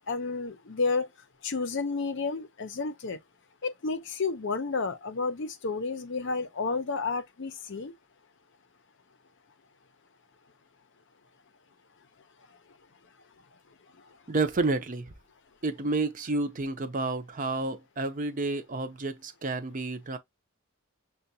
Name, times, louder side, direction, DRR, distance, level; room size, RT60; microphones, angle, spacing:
voice 1, 0.1-1.1 1.4-3.2 3.6-7.9, left 4 dB, 55° left, 0.6 m, -31 dB
voice 2, 14.3-15.1 15.6-20.2, right 3 dB, 35° right, 0.5 m, -30 dB
6.7 x 2.2 x 2.6 m
head